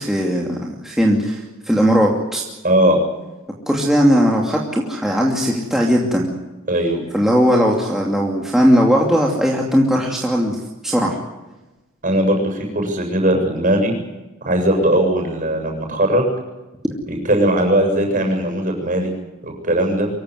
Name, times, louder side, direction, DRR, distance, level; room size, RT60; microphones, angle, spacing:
voice 1, 0.0-2.4 3.7-6.3 7.1-10.6 10.8-11.2, equal, ahead, -2 dB, 2.6 m, -18 dB
voice 2, 2.6-3.0 6.7-7.0 12.0-13.9 14.4-16.2 17.1-19.1 19.4-20.1, right 1 dB, 40° right, 3 dB, 7.5 m, -18 dB
24.5 x 16.0 x 9.6 m, 1.1 s
head